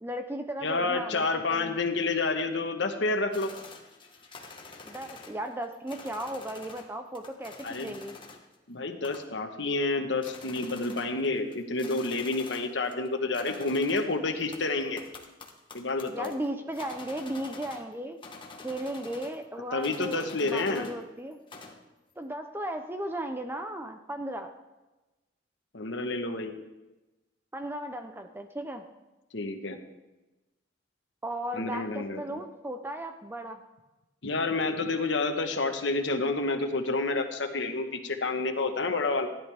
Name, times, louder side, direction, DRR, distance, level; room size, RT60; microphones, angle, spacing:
voice 1, 0.0-1.8 4.9-8.2 16.1-18.2 18.6-21.4 22.2-24.5 27.5-28.8 31.2-33.6, right 1 dB, 10° right, 6 dB, 0.5 m, -36 dB
voice 2, 0.6-3.5 7.6-8.0 8.7-15.0 15.7-16.3 19.7-20.9 25.7-26.6 29.3-29.8 31.5-32.4 34.2-39.3, left 3 dB, 70° left, 6 dB, 1.2 m, -29 dB
sound 1, 3.3-6.9 7.1-8.5 9.0-9.5 9.8-9.9 10.1-13.1 13.3-17.9 18.2-19.4 19.8-21.0 21.3-21.8, left 3 dB, 25° left, 1.3 m, -47 dB
15.5 x 10.5 x 3.4 m, 1.1 s
head